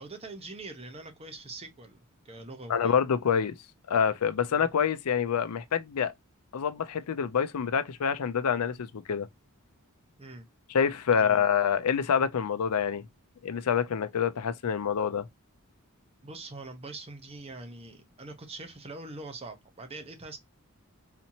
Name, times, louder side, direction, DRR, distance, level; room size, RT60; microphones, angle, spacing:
voice 1, 0.0-2.0 2.2-2.9 4.5-4.6 10.2-10.5 11.2-11.5 16.2-20.4, right 2 dB, 25° right, 0.8 m, -43 dB
voice 2, 2.7-3.5 3.9-6.1 6.5-9.3 10.7-13.0 13.4-15.3, left 7 dB, 85° left, 0.5 m, -27 dB
4.2 x 2.8 x 2.7 m
head